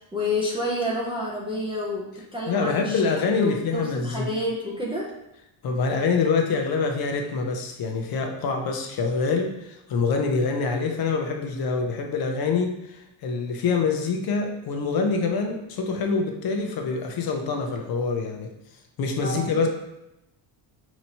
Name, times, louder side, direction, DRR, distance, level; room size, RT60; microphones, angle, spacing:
voice 1, 0.1-2.0 2.3-3.0 3.4-5.1 19.2-19.7, left 1 dB, 10° right, -6 dB, 0.4 m, -29 dB
voice 2, 2.5-4.3 5.6-18.5 19.0-19.7, left 4 dB, 50° left, 3 dB, 0.6 m, -25 dB
5.2 x 2.9 x 2.8 m, 0.89 s
cardioid pair, 170°, 49 cm